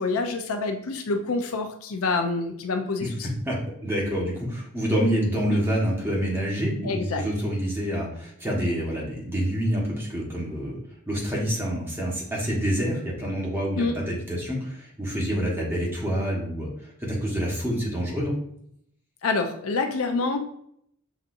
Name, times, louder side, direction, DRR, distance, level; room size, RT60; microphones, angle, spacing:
voice 1, 0.0-3.3 5.5-5.6 6.8-7.2 13.8-14.0 19.2-20.4, left 3 dB, 85° left, 5 dB, 0.6 m, -27 dB
voice 2, 3.5-10.8 11.1-16.7 17.0-18.3, equal, 10° right, -4 dB, 1.2 m, -27 dB
6.0 x 2.7 x 2.6 m, 0.70 s
head